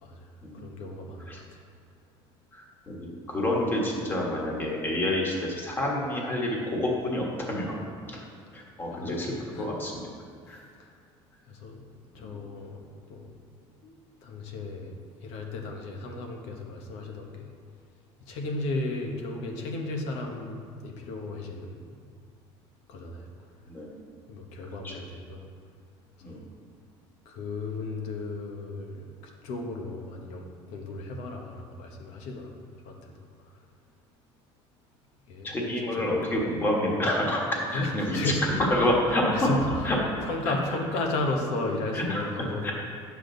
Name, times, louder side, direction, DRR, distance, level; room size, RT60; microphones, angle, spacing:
voice 1, 0.5-1.4 8.9-9.7 11.5-11.8 12.1-13.3 13.8-13.9 14.2-15.0 15.2-17.5 18.3-21.9 22.9-23.3 24.3-25.4 26.3-26.4 27.2-32.5 32.8-33.1 35.3-35.5 35.9-36.1 37.7-38.6 39.3-42.7, left 2 dB, 85° left, 2 dB, 1.2 m, -34 dB
voice 2, 2.9-7.8 8.1-8.2 8.5-9.3 9.6-9.9 10.5-10.6 12.2-12.3 23.7-23.9 24.8-24.9 26.2-26.4 35.4-38.2 38.7-39.5 39.8-40.0 40.4-40.5 41.9-42.2 42.6-42.7, left 1 dB, 20° left, -2 dB, 1.4 m, -28 dB
10.0 x 7.4 x 4.0 m, 2.2 s
cardioid pair, 165°, 11 cm